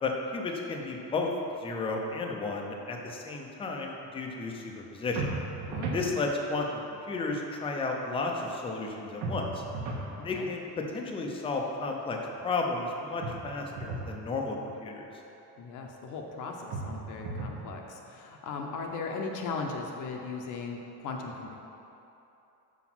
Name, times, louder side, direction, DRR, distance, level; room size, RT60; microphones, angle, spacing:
voice 1, 0.0-1.3 1.6-5.4 5.9-9.6 10.2-12.2 12.4-15.1, left 3 dB, 15° left, 1 dB, 0.4 m, -33 dB
sound 1, 5.2-6.1 9.2-10.1 13.2-14.1 16.7-17.6, right 3 dB, 75° right, 1.2 m, -35 dB
voice 2, 5.7-6.0 10.2-10.5 15.6-21.6, left 4 dB, 50° left, 1 dB, 0.7 m, -38 dB
6.0 x 5.0 x 5.9 m, 3.0 s
cardioid pair, 175°, 39 cm